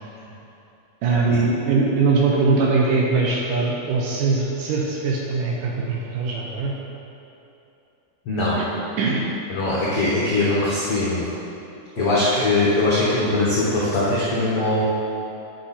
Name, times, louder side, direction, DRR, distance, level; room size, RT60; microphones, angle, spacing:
voice 1, 1.0-6.7 8.6-8.7 9.0-9.3 12.0-12.4, right 4 dB, 75° right, -2 dB, 2.1 m, -21 dB
voice 2, 9.5-11.2 12.0-14.8, left 2 dB, 80° left, -8 dB, 1.2 m, -21 dB
9.1 x 6.0 x 4.2 m, 2.8 s
omnidirectional pair, 4.4 m